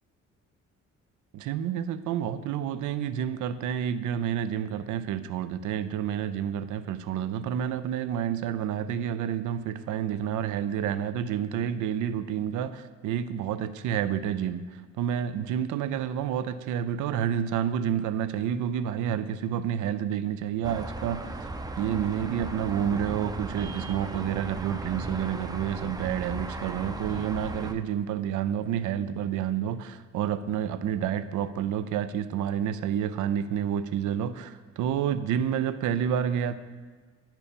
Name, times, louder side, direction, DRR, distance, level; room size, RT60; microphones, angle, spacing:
voice 1, 1.3-14.6 15.0-21.5 21.8-36.6, right 9 dB, 80° right, 12 dB, 0.5 m, -29 dB
sound 1, 20.6-27.7, right 2 dB, 15° right, 0.5 m, -36 dB
9.9 x 4.5 x 5.2 m, 1.4 s
cardioid pair, 90°, 30 cm